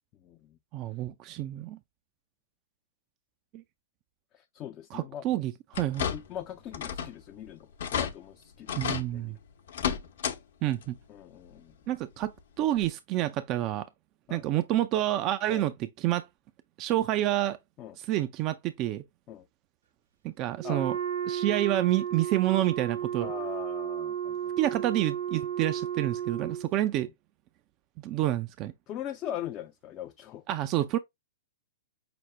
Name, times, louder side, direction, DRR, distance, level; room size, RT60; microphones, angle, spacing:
voice 1, 0.2-0.6 4.3-5.3 6.1-9.4 11.1-11.7 14.3-14.4 15.5-15.6 17.8-18.0 19.3-19.5 20.6-20.8 23.2-24.5 28.9-30.4, left 11 dB, 35° left, 0.5 m, -41 dB
voice 2, 0.7-1.8 3.5-3.6 4.9-6.1 8.8-9.4 10.6-11.0 11.9-12.3 12.6-13.9 14.3-16.3 16.8-17.6 18.0-19.0 20.2-21.0 21.3-23.3 24.6-27.1 28.0-28.7 30.5-31.0, right 14 dB, 35° right, 0.4 m, -28 dB
sound 1, 5.7-6.4 6.7-7.2 7.5-7.6 7.8-8.1 8.7-9.1 9.7-10.4 10.7-10.8 12.2-12.3 12.8-12.9, left 8 dB, 65° left, 0.9 m, -31 dB
Wind instrument woodwind instrument, 20.6-26.7, right 9 dB, 80° right, 1.1 m, -33 dB
6.0 x 2.1 x 3.2 m
hypercardioid pair, 110°, 0 cm